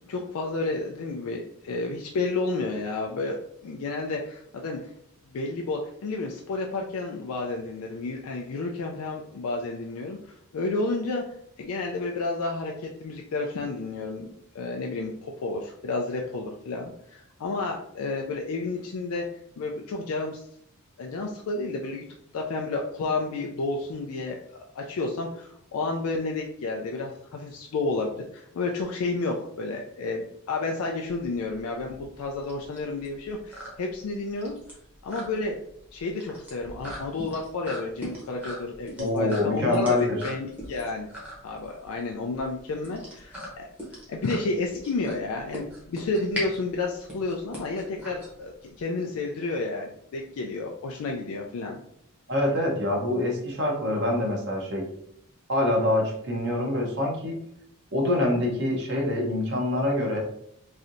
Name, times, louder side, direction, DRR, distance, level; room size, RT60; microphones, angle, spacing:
voice 1, 0.1-3.4 3.6-4.9 5.3-11.2 11.6-19.3 19.6-20.4 21.0-22.0 22.3-34.6 35.0-35.6 35.9-39.9 40.2-41.1 41.4-43.7 44.1-51.8, left 3 dB, 80° left, 1 dB, 0.4 m, -31 dB
sound 1, 31.1-48.8, equal, 5° right, 0.8 m, -40 dB
voice 2, 39.0-40.2 52.3-54.8 55.5-57.3 57.9-60.2, left 1 dB, 50° right, -1 dB, 0.8 m, -25 dB
3.1 x 2.7 x 2.5 m, 0.71 s
head